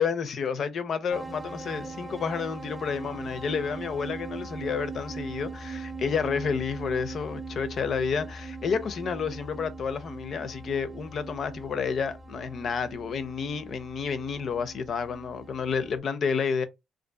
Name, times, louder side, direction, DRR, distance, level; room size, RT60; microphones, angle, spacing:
voice 1, 0.0-16.7, left 6 dB, 60° left, 0.4 m, -30 dB
sound 1, 1.1-16.0, right 3 dB, 10° right, 0.5 m, -40 dB
2.6 x 2.3 x 2.2 m
cardioid pair, 90°, 0 cm